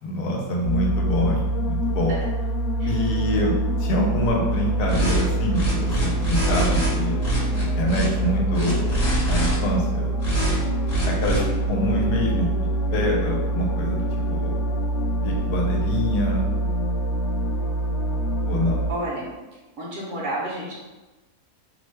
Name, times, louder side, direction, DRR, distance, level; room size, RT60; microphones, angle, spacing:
voice 1, 0.0-2.2 2.8-3.5 3.8-7.2 7.7-8.9 9.3-10.1 11.1-12.5 12.9-14.6 15.2-16.4 18.5-18.9, left 1 dB, 85° left, -1 dB, 1.2 m, -26 dB
sound 1, 0.6-18.9, right 1 dB, 70° left, 0.7 m, -25 dB
sound 2, 4.9-5.2 5.5-6.9 7.2-8.1 8.5-9.6 10.2-10.6 10.9-11.4, right 1 dB, 35° left, 0.7 m, -24 dB
voice 2, 18.9-19.2 19.8-20.7, right 1 dB, 60° right, -5 dB, 0.9 m, -30 dB
2.9 x 2.1 x 3.2 m, 1.2 s
omnidirectional pair, 1.7 m